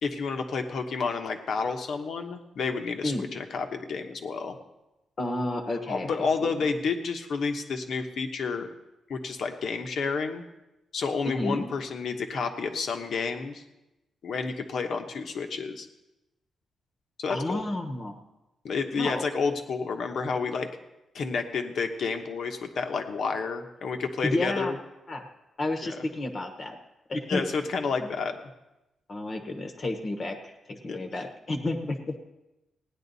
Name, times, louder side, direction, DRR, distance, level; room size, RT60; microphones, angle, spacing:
voice 1, 0.0-4.6 5.9-8.7 9.1-10.4 10.9-13.6 14.2-15.9 17.2-17.6 18.6-20.7 21.1-24.7 25.8-26.0 27.3-28.4 30.9-31.3, left 5 dB, 60° left, 5 dB, 1.1 m, -30 dB
voice 2, 5.2-6.5 11.2-11.6 17.3-18.2 19.0-19.3 24.2-24.7 25.1-25.2 25.6-26.8 27.1-27.4 28.0-28.1 29.1-32.1, left 2 dB, 35° left, 5 dB, 1.1 m, -31 dB
16.5 x 10.0 x 4.1 m, 0.96 s
wide cardioid pair, 140°, 0 cm